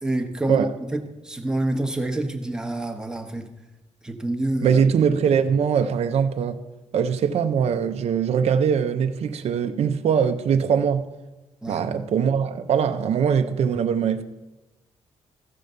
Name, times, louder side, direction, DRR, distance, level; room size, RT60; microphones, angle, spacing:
voice 1, 0.0-3.5 4.0-4.8 11.6-11.8, right 1 dB, 5° right, 1.0 m, -27 dB
voice 2, 4.6-6.6 6.9-11.1 11.7-14.2, right 7 dB, 60° right, 0.6 m, -22 dB
14.5 x 5.0 x 6.7 m
cardioid pair, 120°, 12 cm